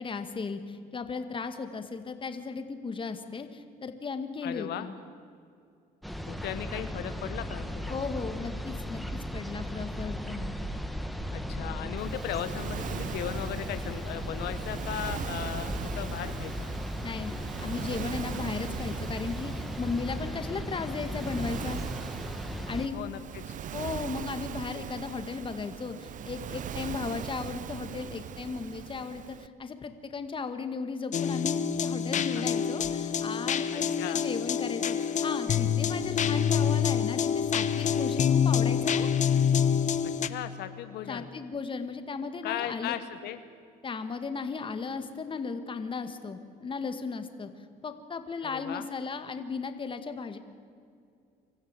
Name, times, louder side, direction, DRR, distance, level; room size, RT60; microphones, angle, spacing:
voice 1, 0.0-5.0 7.9-9.0 9.3-10.5 17.0-17.3 17.6-21.8 22.7-23.1 23.7-39.1 41.1-43.0 43.8-47.5 47.8-50.4, left 4 dB, 30° left, 9 dB, 1.9 m, -36 dB
voice 2, 4.4-4.9 6.3-8.0 11.3-16.7 22.9-23.6 32.1-32.4 33.7-34.2 40.0-41.3 42.4-43.4 48.4-48.9, left 11 dB, 80° left, 10 dB, 1.1 m, -37 dB
sound 1, 6.0-22.9, equal, ahead, 1.4 m, -36 dB
Waves surf, 12.0-29.5, right 10 dB, 50° right, 0.7 m, -40 dB
sound 2, 31.1-40.3, left 8 dB, 45° left, 1.1 m, -26 dB
25.0 x 14.5 x 9.0 m, 2.4 s
cardioid pair, 110°, 17 cm